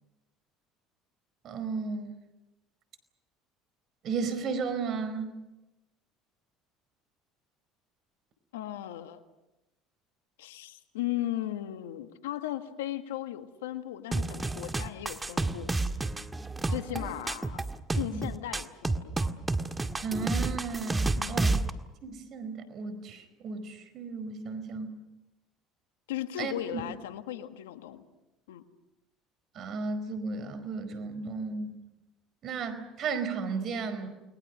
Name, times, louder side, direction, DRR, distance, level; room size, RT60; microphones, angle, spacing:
voice 1, 1.4-2.1 4.0-5.3 16.9-17.1 18.1-18.2 20.0-21.5 22.0-25.0 26.4-26.8 29.5-31.8 32.4-34.1, right 4 dB, 55° right, 12 dB, 4.8 m, -34 dB
voice 2, 8.5-9.2 10.4-15.8 16.7-17.6 17.9-19.2 21.2-21.5 26.1-28.1 28.5-28.6, left 13 dB, 85° left, 8 dB, 1.7 m, -36 dB
sound 1, 14.1-21.7, right 2 dB, 15° right, 1.8 m, -30 dB
30.0 x 22.0 x 6.5 m, 0.99 s
hypercardioid pair, 75°, 0 cm